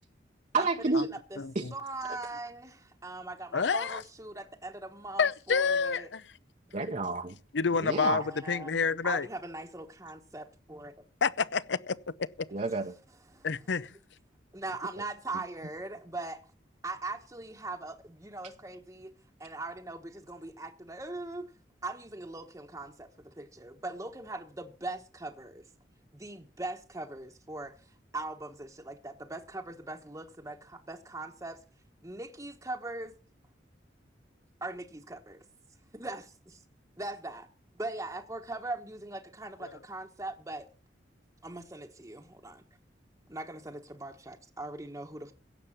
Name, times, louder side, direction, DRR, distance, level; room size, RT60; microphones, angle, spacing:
voice 1, 0.5-1.1 1.5-1.7 2.1-2.2 6.7-7.4 7.8-8.2 12.5-12.9, right 3 dB, 40° right, 0.8 m, -29 dB
voice 2, 1.7-6.1 7.8-10.9 13.3-13.5 14.5-16.4 16.8-19.1 19.4-21.5 21.8-25.6 26.1-27.9 28.1-31.6 32.0-33.1 34.6-35.4 35.9-36.2 37.0-37.5 37.8-40.7 41.4-42.6 43.3-45.3, right 2 dB, 15° right, 1.1 m, -40 dB
voice 3, 3.5-4.0 5.2-6.2 7.5-9.3 11.2-12.5 13.4-14.0 39.6-39.8, left 5 dB, 75° left, 0.7 m, -29 dB
16.5 x 7.2 x 7.2 m
head